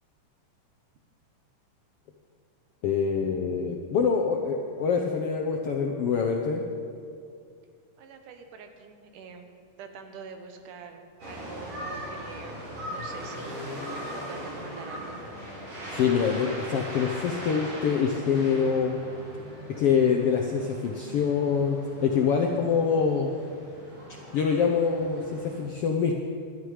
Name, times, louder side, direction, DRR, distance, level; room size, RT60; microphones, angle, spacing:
voice 1, 2.8-6.6 15.9-19.0 19.8-23.3 24.3-26.2, left 6 dB, 70° left, 2 dB, 1.4 m, -25 dB
voice 2, 8.0-9.5 9.8-13.7 14.1-15.2 20.9-21.0, right 5 dB, 75° right, 6 dB, 2.6 m, -45 dB
sound 1, 11.2-25.6, equal, 45° right, 5.2 m, -39 dB
20.5 x 11.5 x 5.0 m, 2.3 s
omnidirectional pair, 3.8 m